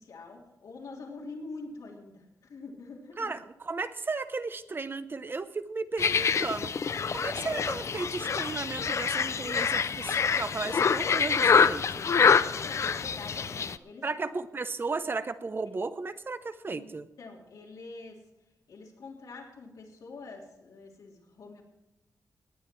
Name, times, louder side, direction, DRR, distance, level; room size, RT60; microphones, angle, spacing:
voice 1, 0.0-3.3 12.6-14.3 16.7-16.9 17.2-18.2 18.7-21.6, left 3 dB, 90° left, -2 dB, 3.4 m, -45 dB
voice 2, 3.2-6.7 7.1-12.0 14.0-17.1, right 3 dB, 35° right, 12 dB, 0.7 m, -35 dB
sound 1, 6.0-13.8, left 6 dB, 50° left, 0.4 m, -26 dB
18.5 x 9.7 x 4.6 m, 0.94 s
wide cardioid pair, 115°, 6 cm